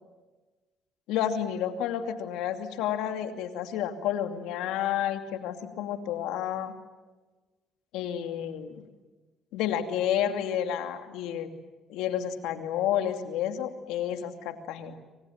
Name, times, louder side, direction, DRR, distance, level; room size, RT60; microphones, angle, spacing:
voice 1, 1.1-6.7 7.9-8.8 9.5-11.5 11.9-14.9, left 10 dB, 80° left, 6 dB, 2.7 m, -30 dB
28.0 x 26.0 x 7.4 m, 1.2 s
supercardioid pair, 75°, 0 cm